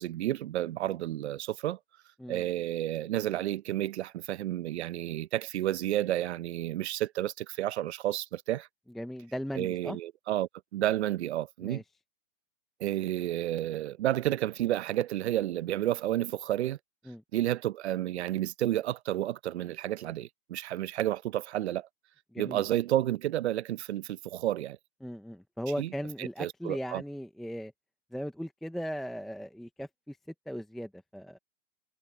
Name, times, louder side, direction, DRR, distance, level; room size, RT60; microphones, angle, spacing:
voice 1, 0.0-1.8 2.3-8.7 9.5-11.8 12.8-16.8 17.3-21.9 22.4-24.8 25.8-25.9 26.2-27.0, right 13 dB, 55° right, 0.8 m, -31 dB
voice 2, 8.9-10.0 11.6-11.8 17.1-17.2 22.3-22.6 25.0-27.7 28.1-30.2 30.5-31.4, equal, ahead, 0.7 m, -38 dB
hypercardioid pair, 150°, 39 cm